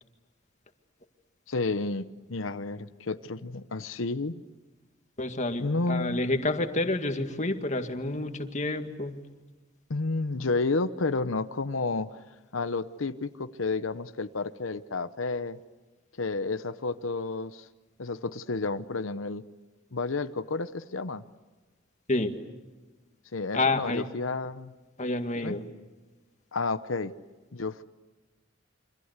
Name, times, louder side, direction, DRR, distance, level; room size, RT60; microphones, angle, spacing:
voice 1, 1.5-4.4 5.6-6.2 9.9-12.2 12.5-15.6 16.2-17.7 18.0-19.4 19.9-21.2 23.3-24.7 25.4-25.6 26.5-27.1 27.5-27.8, left 3 dB, 90° left, 12 dB, 0.9 m, -31 dB
voice 2, 5.2-9.2 22.1-22.4 23.5-24.1 25.0-25.6, left 2 dB, 40° left, 6 dB, 2.0 m, -29 dB
28.5 x 25.0 x 8.2 m, 1.2 s
head